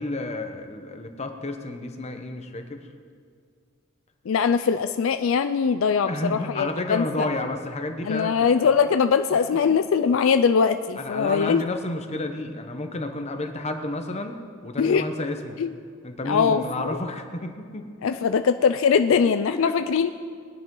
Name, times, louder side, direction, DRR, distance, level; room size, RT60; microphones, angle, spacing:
voice 1, 0.0-2.8 6.1-8.5 9.3-9.4 11.0-15.6 16.0-17.9 19.5-19.8, left 2 dB, 30° left, 6 dB, 0.9 m, -31 dB
voice 2, 4.3-7.3 8.0-11.6 14.8-15.0 15.6-15.7 16.2-17.0 18.0-20.1, left 6 dB, 65° left, 10 dB, 0.4 m, -21 dB
21.0 x 10.5 x 3.8 m, 2.2 s
head